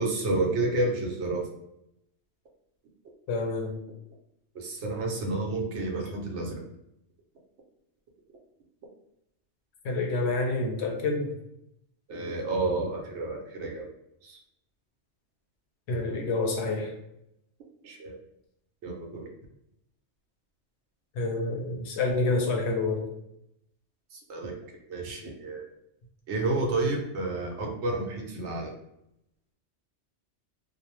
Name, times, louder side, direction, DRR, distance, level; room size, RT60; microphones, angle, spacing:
voice 1, 0.0-1.5 4.5-6.6 12.1-13.9 14.2-14.4 17.8-18.2 18.8-19.3 24.1-24.6 24.9-25.6 26.3-28.7, right 2 dB, 70° right, 1 dB, 0.9 m, -30 dB
voice 2, 3.3-3.7 9.8-11.4 15.9-16.9 21.2-23.0, left 3 dB, 70° left, 2 dB, 0.8 m, -28 dB
2.5 x 2.0 x 3.0 m, 0.80 s
omnidirectional pair, 1.2 m